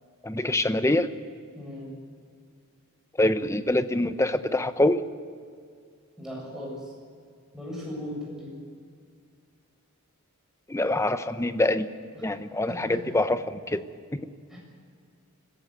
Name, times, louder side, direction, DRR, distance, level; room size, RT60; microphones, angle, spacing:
voice 1, 0.2-1.1 3.2-5.0 10.7-11.9 12.2-13.8 14.1-14.2, left 1 dB, 15° left, 11 dB, 0.8 m, -25 dB
voice 2, 1.5-1.9 6.2-6.9 7.5-8.5 12.1-12.2 12.7-13.0 14.5-14.6, left 1 dB, ahead, -4 dB, 7.7 m, -37 dB
24.5 x 15.5 x 8.2 m, 2.1 s
head